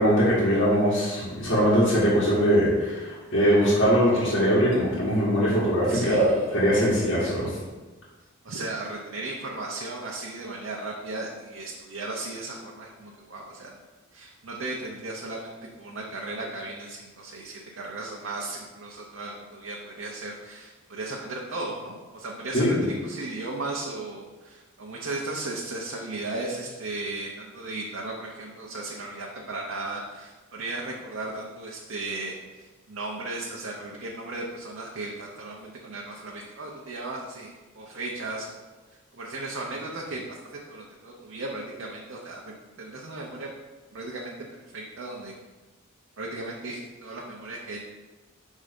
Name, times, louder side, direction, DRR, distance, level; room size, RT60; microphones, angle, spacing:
voice 1, 0.0-7.5 22.5-22.8, equal, 60° left, -9 dB, 1.8 m, -21 dB
voice 2, 5.8-6.6 8.4-13.8 14.1-38.6 39.1-40.4 40.7-43.5 43.9-44.3 44.7-45.3 46.2-47.8, right 2 dB, 65° right, -2 dB, 0.7 m, -36 dB
5.4 x 3.7 x 5.1 m, 1.3 s
head